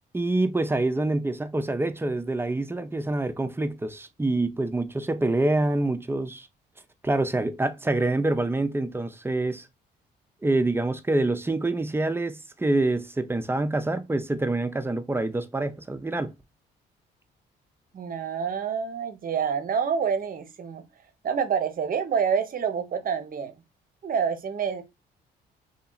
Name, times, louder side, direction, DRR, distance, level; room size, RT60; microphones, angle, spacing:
voice 1, 0.1-6.5 7.0-9.7 10.4-16.3, right 2 dB, 10° right, 0.5 m, -26 dB
voice 2, 17.9-20.8 21.2-23.5 24.0-24.8, right 7 dB, 50° right, 0.7 m, -27 dB
2.8 x 2.7 x 2.2 m
supercardioid pair, 70°, 19 cm